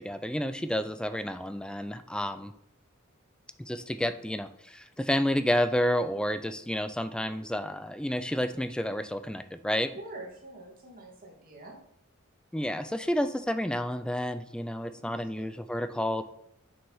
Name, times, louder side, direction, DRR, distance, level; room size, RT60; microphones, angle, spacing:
voice 1, 0.0-2.5 3.6-9.9 12.5-16.2, equal, 5° left, 10 dB, 0.4 m, -30 dB
voice 2, 9.9-11.8 15.0-15.4, right 2 dB, 40° right, -1 dB, 2.2 m, -45 dB
7.1 x 6.3 x 5.6 m, 0.76 s
head